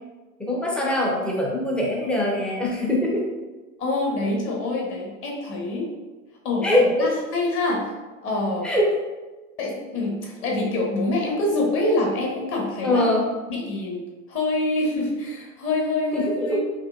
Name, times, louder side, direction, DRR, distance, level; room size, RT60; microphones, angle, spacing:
voice 1, 0.4-3.3 6.6-7.1 8.6-8.9 12.8-13.3 16.1-16.6, left 1 dB, ahead, -3 dB, 0.5 m, -22 dB
voice 2, 3.8-5.9 6.4-7.9 8.2-8.7 9.6-13.0 13.5-14.0 14.3-16.6, left 2 dB, 30° left, -2 dB, 1.0 m, -25 dB
4.9 x 2.9 x 2.3 m, 1.2 s
figure-of-eight pair, 90°, 42 cm